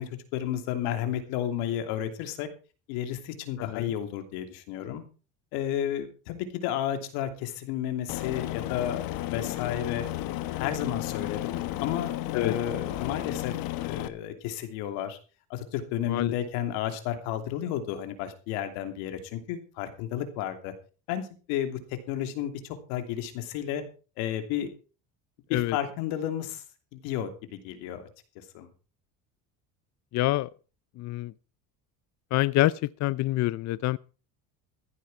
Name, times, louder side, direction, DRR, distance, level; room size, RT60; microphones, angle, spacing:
voice 1, 0.0-2.5 2.9-5.0 5.5-10.0 10.6-13.6 13.8-15.2 15.5-20.7 21.1-23.8 24.2-24.7 25.5-26.6 26.9-28.0 28.3-28.7, left 10 dB, 90° left, 2.9 m, -32 dB
voice 2, 3.6-3.9 12.3-12.5 16.1-16.3 25.5-25.8 30.1-30.5 31.0-31.3 32.3-34.0, left 16 dB, 50° left, 0.5 m, -26 dB
Aircraft, 8.1-14.1, left 15 dB, 70° left, 1.4 m, -33 dB
15.0 x 10.0 x 4.9 m
cardioid pair, 115°, 36 cm